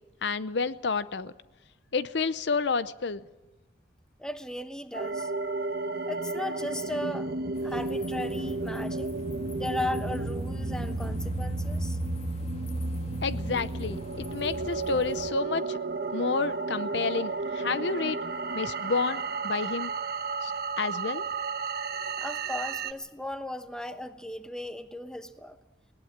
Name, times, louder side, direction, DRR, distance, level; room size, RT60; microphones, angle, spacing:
voice 1, 0.2-1.3 1.9-3.2 13.2-15.8 16.1-18.2 18.5-19.9 20.4-20.5 20.8-21.2, left 4 dB, 65° left, 14 dB, 0.7 m, -30 dB
voice 2, 4.2-5.3 6.1-7.3 7.6-9.1 9.6-12.0 22.2-25.6, left 1 dB, 5° left, 9 dB, 0.9 m, -36 dB
sound 1, 4.9-22.9, right 3 dB, 55° right, 1.0 m, -33 dB
sound 2, 7.5-15.3, equal, 35° left, 2.8 m, -40 dB
20.5 x 18.0 x 7.4 m, 1.1 s
head